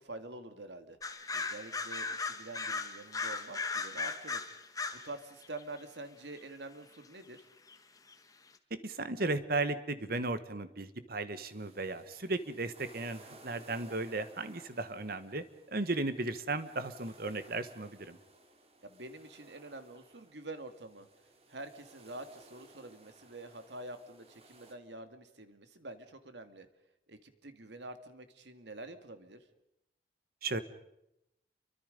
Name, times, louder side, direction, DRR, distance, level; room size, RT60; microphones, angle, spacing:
voice 1, 0.0-4.7 5.0-7.5 18.8-21.1 21.5-26.7 27.1-29.4, right 2 dB, 80° right, 9 dB, 2.0 m, -47 dB
sound 1, 1.0-5.1 5.4-5.8 7.4-7.5 7.7-7.8 8.1-8.2, left 4 dB, 20° left, 1.4 m, -37 dB
voice 2, 8.7-15.4 15.7-18.2 30.4-30.6, right 2 dB, 55° right, 12 dB, 1.4 m, -35 dB
sound 2, 11.4-24.7, right 2 dB, 35° right, 2.8 m, -59 dB
29.0 x 24.0 x 5.3 m, 0.84 s
head